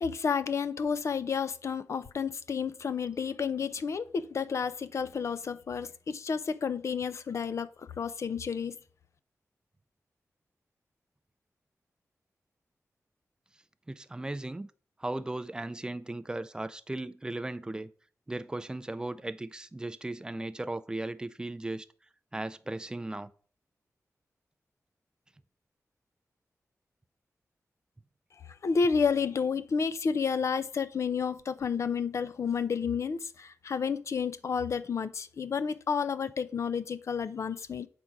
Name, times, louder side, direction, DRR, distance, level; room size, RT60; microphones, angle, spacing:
voice 1, 0.0-8.8 28.6-37.9, left 6 dB, 60° left, 0.6 m, -31 dB
voice 2, 13.9-14.7 15.0-17.9 18.3-21.9 22.3-23.3, right 2 dB, 15° right, 0.4 m, -36 dB
8.2 x 3.8 x 5.9 m
wide cardioid pair, 180°, 6 cm